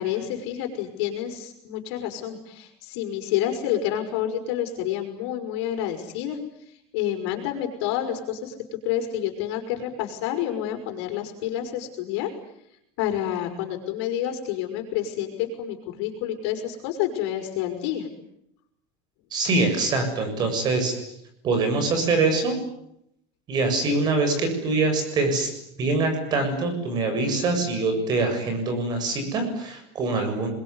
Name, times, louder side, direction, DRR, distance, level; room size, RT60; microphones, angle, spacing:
voice 1, 0.0-8.5 8.8-12.3 13.0-18.1, left 11 dB, 70° left, 4 dB, 5.2 m, -29 dB
voice 2, 19.3-20.9 21.4-22.5 23.5-25.5 25.8-30.5, right 3 dB, 30° right, 7 dB, 7.2 m, -24 dB
28.0 x 22.0 x 9.7 m, 0.78 s
cardioid pair, 175°, 14 cm